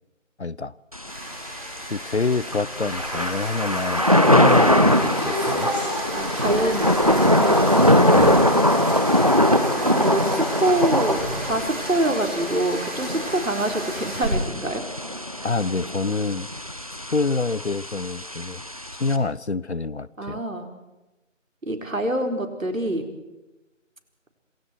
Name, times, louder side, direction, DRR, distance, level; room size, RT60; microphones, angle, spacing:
voice 1, 0.4-0.7 1.9-5.7 8.1-8.5 15.4-16.5 17.1-18.6 19.0-20.4, left 3 dB, 60° left, 21 dB, 0.8 m, -26 dB
Thunder / Rain, 0.9-19.2, left 1 dB, 30° right, 0.9 m, -22 dB
sound 1, 1.0-14.2, right 1 dB, 5° right, 6.8 m, -33 dB
voice 2, 6.1-7.6 9.8-14.8 15.4-15.5 20.2-20.7 21.6-23.1, right 1 dB, 90° right, 4 dB, 4.5 m, -26 dB
26.5 x 23.5 x 4.6 m, 1.1 s
figure-of-eight pair, 175°, 39 cm